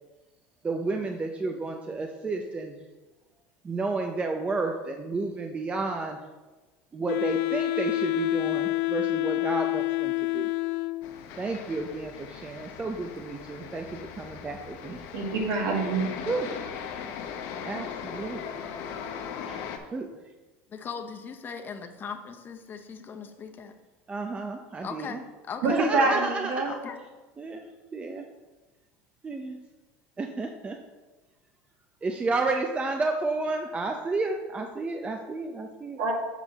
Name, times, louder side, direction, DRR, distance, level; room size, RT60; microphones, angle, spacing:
voice 1, 0.6-2.8 3.6-6.2 6.9-10.5 11.4-15.1 16.3-16.7 17.6-18.5 19.5-20.1 24.1-25.2 25.7-26.8 27.4-27.6 27.9-28.2 29.2-29.6 30.2-30.8 32.0-36.0, right 3 dB, 20° right, 4 dB, 0.6 m, -31 dB
Wind instrument woodwind instrument, 7.1-11.2, left 21 dB, 80° left, 0.4 m, -28 dB
sound 1, 11.0-19.8, left 7 dB, 60° left, 0.8 m, -39 dB
voice 2, 15.1-16.1 25.6-26.7 36.0-36.1, right 3 dB, 60° right, 0 dB, 1.8 m, -25 dB
voice 3, 20.7-23.7 24.8-26.4 26.7-27.0, left 6 dB, 30° left, 6 dB, 0.7 m, -39 dB
7.3 x 5.4 x 4.0 m, 1.2 s
supercardioid pair, 115°, 6 cm